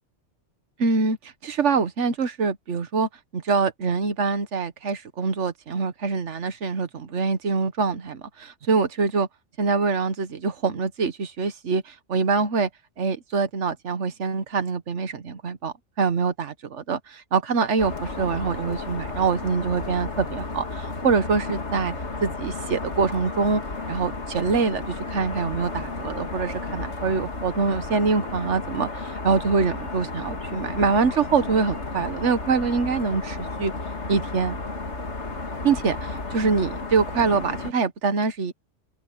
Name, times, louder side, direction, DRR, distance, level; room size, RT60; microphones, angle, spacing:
voice 1, 0.8-9.3 9.6-12.7 13.0-21.9 22.2-23.6 23.9-33.7 34.1-34.6 35.6-38.5, right 4 dB, 75° right, 1.5 m, -25 dB
sound 1, 17.8-37.7, left 3 dB, 70° left, 2.6 m, -33 dB
open air
omnidirectional pair, 1.2 m